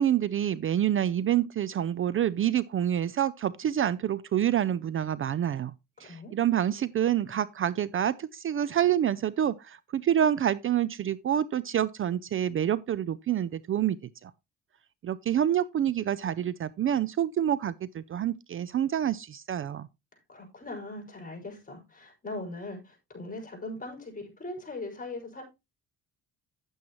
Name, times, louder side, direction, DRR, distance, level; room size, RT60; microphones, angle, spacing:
voice 1, 0.0-5.7 6.0-14.0 14.2-14.3 15.0-19.9, right 10 dB, 45° right, 0.5 m, -27 dB
voice 2, 6.0-6.3 20.3-25.4, left 2 dB, 25° left, 5.3 m, -40 dB
10.0 x 8.6 x 3.0 m
cardioid pair, 90°, 30 cm